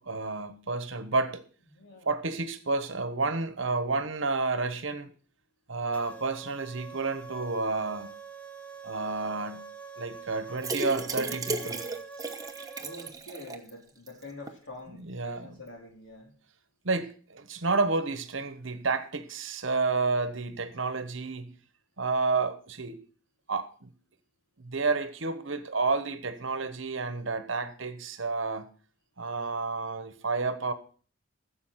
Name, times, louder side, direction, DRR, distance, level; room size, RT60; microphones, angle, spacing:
voice 1, 0.0-1.4 2.0-5.1 5.7-8.1 8.8-9.7 10.0-11.8 15.1-15.6 16.8-21.5 22.0-23.0 23.5-23.9 24.6-28.7 29.2-30.7, right 3 dB, 60° right, 1.1 m, -30 dB
voice 2, 1.7-2.1 12.8-16.3, left 2 dB, 60° left, 3.8 m, -46 dB
sound 1, 5.9-13.1, right 4 dB, 5° left, 0.8 m, -45 dB
sound 2, 10.6-13.7 14.1-14.2 14.5-14.6, right 2 dB, 15° right, 1.0 m, -34 dB
15.0 x 7.3 x 5.8 m
head